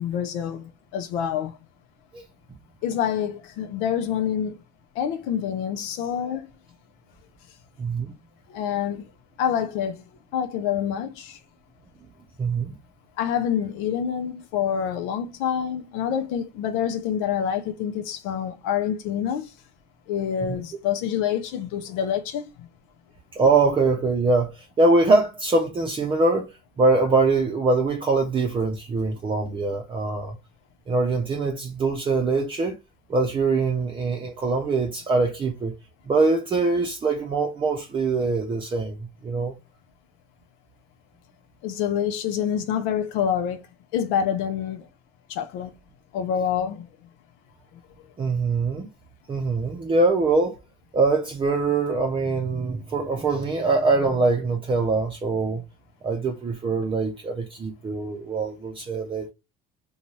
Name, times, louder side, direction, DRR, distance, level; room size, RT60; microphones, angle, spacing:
voice 1, 0.0-1.6 2.8-4.6 5.0-6.5 8.5-9.1 9.4-10.0 10.3-11.4 13.2-19.5 20.1-22.7 41.6-43.6 43.9-44.9 45.3-45.7 46.1-46.9, left 8 dB, 80° left, 0.5 m, -27 dB
voice 2, 7.8-8.1 12.4-12.8 20.5-20.6 23.4-30.4 30.9-32.8 33.1-35.7 36.1-39.5 48.2-48.9 49.3-50.6 50.9-55.6 56.0-59.3, right 3 dB, 25° right, 0.6 m, -23 dB
2.6 x 2.3 x 3.0 m
supercardioid pair, 95°, 20 cm